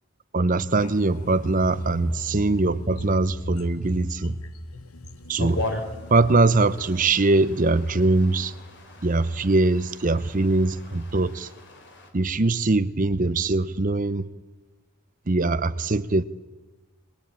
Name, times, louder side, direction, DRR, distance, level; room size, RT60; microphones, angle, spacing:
voice 1, 0.3-4.3 5.3-5.6 6.1-8.5 9.0-11.5 12.1-14.3 15.3-16.2, right 2 dB, 40° right, 0.7 m, -22 dB
sound 1, 0.7-8.6 8.9-9.1, equal, 85° left, 1.1 m, -37 dB
sound 2, 5.4-12.1, left 2 dB, 55° left, 3.7 m, -38 dB
21.5 x 21.0 x 8.8 m
head